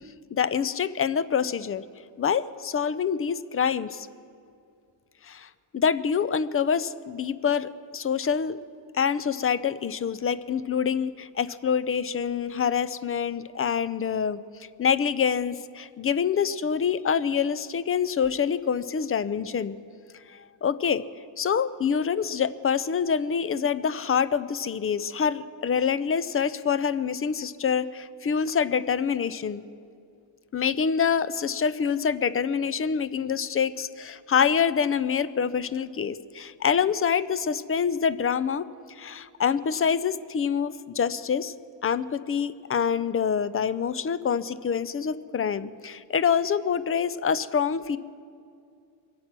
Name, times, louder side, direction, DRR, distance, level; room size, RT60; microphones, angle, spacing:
voice 1, 0.3-1.8 2.2-4.1 5.2-8.6 8.9-14.4 14.8-19.8 20.3-21.0 21.4-29.6 30.5-38.7 39.0-41.5 41.8-48.0, left 7 dB, 30° left, 16 dB, 0.5 m, -26 dB
24.0 x 8.5 x 6.1 m, 2.4 s
cardioid pair, 90°, 49 cm